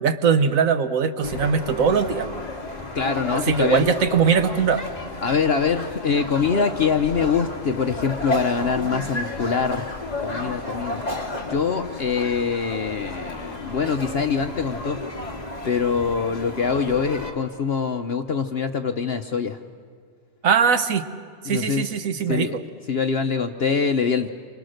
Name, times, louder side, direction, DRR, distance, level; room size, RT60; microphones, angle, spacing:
voice 1, 0.0-2.3 3.5-4.8 20.4-21.0 21.4-22.6, right 6 dB, 70° right, 10 dB, 1.3 m, -21 dB
sound 1, 1.2-17.3, left 2 dB, 30° left, 2.1 m, -32 dB
voice 2, 2.9-3.8 5.2-9.9 10.2-11.0 11.4-15.0 15.6-19.6 21.4-21.9 22.1-22.6 22.9-24.3, left 6 dB, 50° left, 7 dB, 0.9 m, -24 dB
28.0 x 26.0 x 6.5 m, 2.1 s
omnidirectional pair, 1.5 m